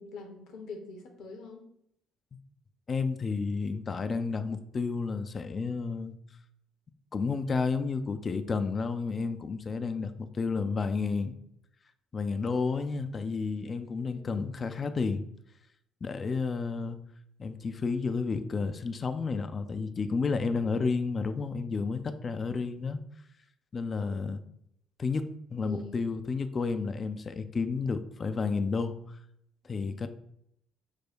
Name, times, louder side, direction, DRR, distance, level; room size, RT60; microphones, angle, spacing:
voice 1, 0.0-1.6 14.1-14.5 24.0-24.4 25.6-26.1, left 3 dB, 60° left, 3 dB, 0.8 m, -45 dB
voice 2, 2.9-6.1 7.1-11.3 12.1-15.2 16.0-17.0 17.4-23.0 23.7-24.4 25.0-29.0 29.6-30.1, left 4 dB, 40° left, 10 dB, 0.4 m, -31 dB
4.8 x 2.1 x 4.2 m, 0.74 s
figure-of-eight pair, 45°, 0 cm